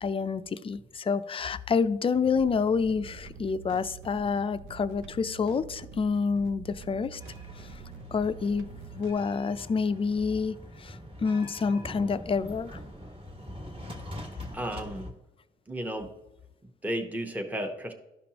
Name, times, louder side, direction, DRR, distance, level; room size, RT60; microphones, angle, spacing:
voice 1, 0.0-7.2 8.1-8.7 8.9-12.8, left 5 dB, 25° left, 13 dB, 0.4 m, -28 dB
sound 1, 2.1-9.1, right 6 dB, 85° right, 0.6 m, -46 dB
sound 2, 7.2-15.1, equal, 25° right, 1.4 m, -44 dB
voice 2, 14.5-15.1 15.7-16.1 16.6-17.9, equal, 10° right, 4 dB, 0.9 m, -33 dB
12.5 x 5.2 x 2.9 m, 0.96 s
cardioid pair, 90°, 20 cm